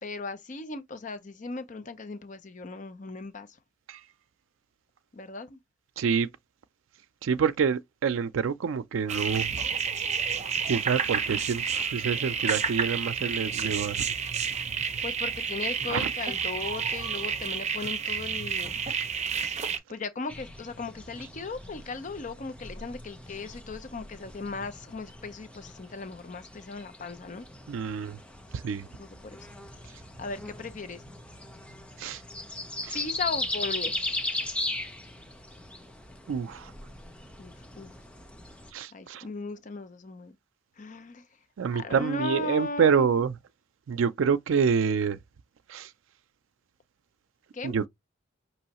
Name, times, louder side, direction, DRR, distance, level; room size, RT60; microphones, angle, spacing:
voice 1, 0.0-3.6 5.1-5.6 15.0-18.8 19.9-27.5 27.7-27.8 28.9-29.4 30.2-31.0 32.9-34.5 37.4-38.0 38.9-40.4 40.8-41.3 41.7-43.1 47.5-47.7, left 3 dB, 40° left, 0.6 m, -37 dB
voice 2, 6.0-6.3 7.2-9.7 10.7-14.0 15.9-16.1 27.7-28.2 28.5-28.9 32.0-32.2 32.8-33.0 36.3-36.7 38.7-39.2 41.6-43.3 43.9-45.2 45.7-45.9 47.6-47.9, right 6 dB, 90° right, 0.4 m, -27 dB
sound 1, 9.1-19.8, right 6 dB, 35° right, 0.6 m, -30 dB
sound 2, 20.3-38.7, left 2 dB, 5° left, 0.7 m, -38 dB
5.4 x 3.0 x 2.9 m
head